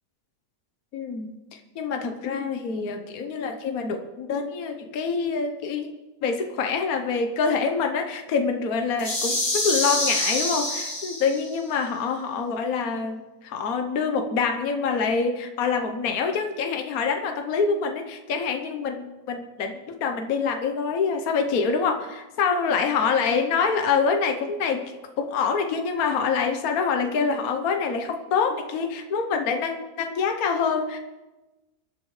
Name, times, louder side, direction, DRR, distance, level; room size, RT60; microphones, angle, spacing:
voice 1, 0.9-5.9 6.2-31.0, left 5 dB, 65° left, 5 dB, 1.4 m, -26 dB
sound 1, 9.0-11.6, left 1 dB, 30° left, 2.2 m, -26 dB
24.5 x 11.5 x 3.2 m, 1.1 s
omnidirectional pair, 1.7 m